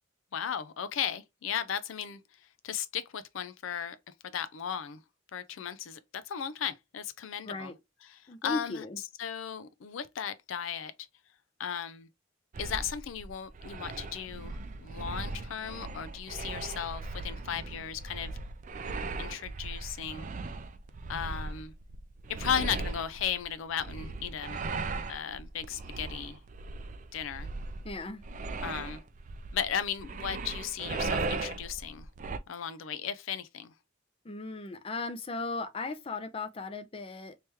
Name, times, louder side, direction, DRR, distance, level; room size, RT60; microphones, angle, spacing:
voice 1, 0.3-2.2 2.6-4.0 4.2-5.0 5.3-7.7 8.0-8.8 9.2-10.9 11.6-12.1 12.6-18.4 19.2-20.3 21.1-21.7 22.3-24.7 25.1-26.4 27.1-27.5 28.6-29.0 29.5-32.1 32.5-33.7, left 8 dB, 80° left, 0.4 m, -36 dB
voice 2, 7.5-7.8 8.3-9.0 27.8-28.2 34.2-37.4, left 3 dB, 30° left, 0.5 m, -37 dB
sound 1, 12.5-32.4, right 3 dB, 40° right, 0.4 m, -38 dB
3.1 x 2.9 x 3.3 m
head